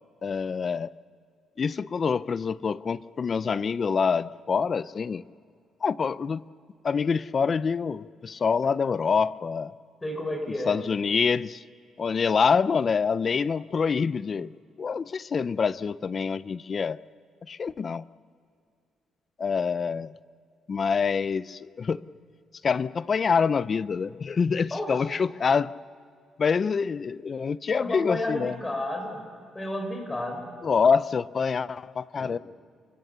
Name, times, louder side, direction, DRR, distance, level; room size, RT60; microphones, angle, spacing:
voice 1, 0.2-0.9 1.6-5.2 5.8-6.4 6.8-9.7 10.7-11.6 12.0-14.5 14.8-17.0 17.5-18.0 19.4-20.1 20.7-22.0 22.6-25.7 26.4-28.6 30.6-32.4, left 5 dB, 45° left, 18 dB, 0.5 m, -26 dB
voice 2, 10.0-10.8 24.7-24.9 27.8-29.2 29.5-30.4 32.2-32.3, left 1 dB, 20° left, 4 dB, 5.1 m, -31 dB
29.0 x 16.0 x 6.8 m, 2.3 s
cardioid pair, 90°, 0 cm